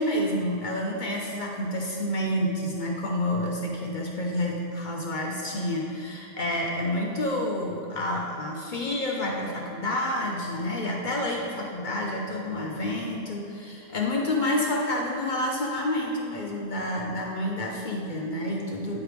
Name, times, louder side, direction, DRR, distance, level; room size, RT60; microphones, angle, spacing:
voice 1, 0.0-19.0, left 1 dB, 55° left, -1 dB, 0.5 m, -29 dB
9.4 x 3.2 x 4.9 m, 2.5 s
omnidirectional pair, 1.6 m